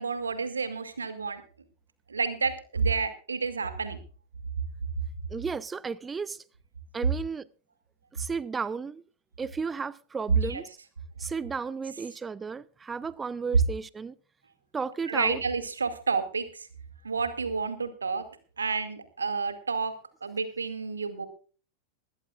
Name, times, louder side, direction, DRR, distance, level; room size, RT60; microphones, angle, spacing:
voice 1, 0.0-1.4 2.1-4.0 10.4-10.6 15.1-16.7 17.0-18.3 18.6-21.3, right 4 dB, 75° right, 2.3 m, -30 dB
voice 2, 5.3-6.4 6.9-7.5 8.1-9.0 9.4-10.7 11.2-14.2 14.7-15.4, right 5 dB, 15° right, 0.6 m, -34 dB
20.5 x 16.0 x 2.4 m
figure-of-eight pair, 90°, 0 cm